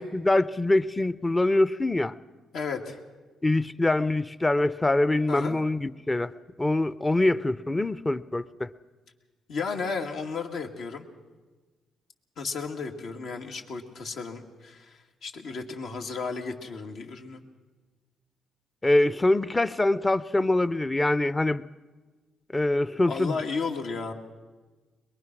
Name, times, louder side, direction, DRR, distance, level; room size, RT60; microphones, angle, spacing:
voice 1, 0.0-2.1 3.4-6.3 6.6-8.7 18.8-21.6 22.5-23.4, left 2 dB, 15° left, 16 dB, 0.7 m, -24 dB
voice 2, 2.5-3.0 5.3-5.6 9.5-11.1 12.4-17.4 23.0-24.1, left 4 dB, 70° left, 3 dB, 2.3 m, -34 dB
22.0 x 22.0 x 6.2 m, 1.3 s
cardioid pair, 90°, 0 cm